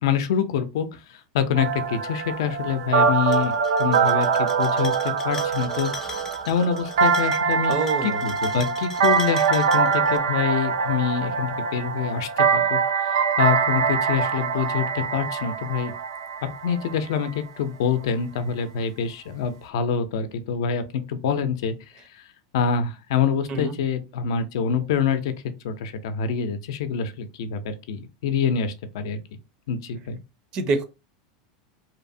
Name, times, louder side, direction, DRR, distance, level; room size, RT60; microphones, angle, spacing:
voice 1, 0.0-5.9 6.5-15.9 16.6-21.8 22.1-22.2 22.5-25.3 25.6-29.2 29.7-30.2, left 7 dB, 75° left, 0.4 m, -26 dB
sound 1, 1.6-17.3, right 6 dB, 85° right, 0.4 m, -23 dB
sound 2, 3.1-10.2, left 4 dB, 20° left, 0.4 m, -40 dB
voice 2, 7.7-8.2 23.5-23.7 30.5-30.8, right 3 dB, 35° right, 0.5 m, -26 dB
2.8 x 2.0 x 2.6 m
supercardioid pair, 140°, 2 cm